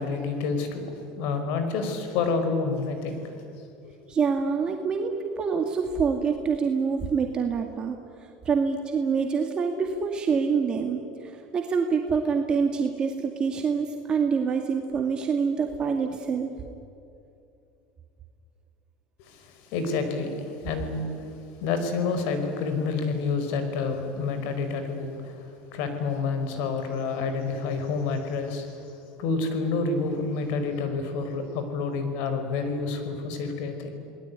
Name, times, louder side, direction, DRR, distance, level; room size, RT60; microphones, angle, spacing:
voice 1, 0.0-3.2 3.8-3.9 19.3-21.1 21.6-28.9 29.2-33.9, left 4 dB, 70° left, 7 dB, 5.0 m, -29 dB
voice 2, 4.1-8.0 8.5-16.5, right 5 dB, 30° right, 3 dB, 2.1 m, -26 dB
29.5 x 20.0 x 9.6 m, 2.6 s
supercardioid pair, 130°, 3 cm